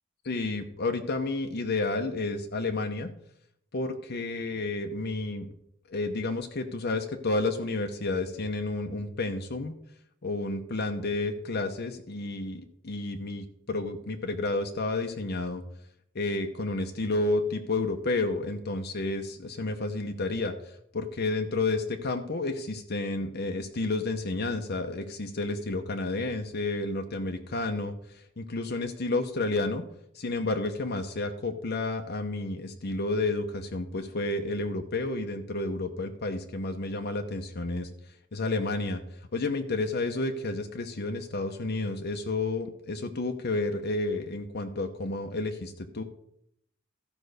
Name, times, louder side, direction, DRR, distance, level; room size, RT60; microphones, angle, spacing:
voice 1, 0.2-3.1 3.7-5.5 5.9-9.7 10.2-15.6 16.1-20.5 20.9-27.9 28.4-29.8 30.1-37.9 38.3-39.0 39.3-46.0, left 2 dB, 55° left, 5 dB, 0.8 m, -31 dB
13.5 x 5.3 x 6.6 m, 0.74 s
head